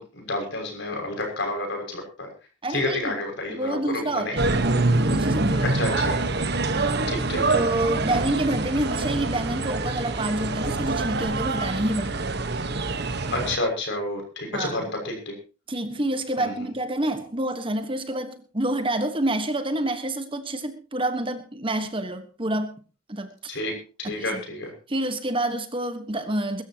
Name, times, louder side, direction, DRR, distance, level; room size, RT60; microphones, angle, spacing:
voice 1, 0.0-2.3 2.7-3.8 4.1-4.4 5.7-6.2 7.1-7.6 13.3-15.3 16.4-16.7 23.5-23.7 24.0-24.7, left 2 dB, 60° left, 6.4 m, -30 dB
voice 2, 2.6-3.2 3.5-4.5 5.0-5.7 6.7-7.1 7.5-12.3 14.5-14.9 15.7-22.7 23.1-23.5 24.0-24.3 24.9-26.6, right 1 dB, 25° right, 1.4 m, -28 dB
sound 1, 4.4-13.6, right 2 dB, 55° right, 1.3 m, -25 dB
22.5 x 13.5 x 3.0 m
head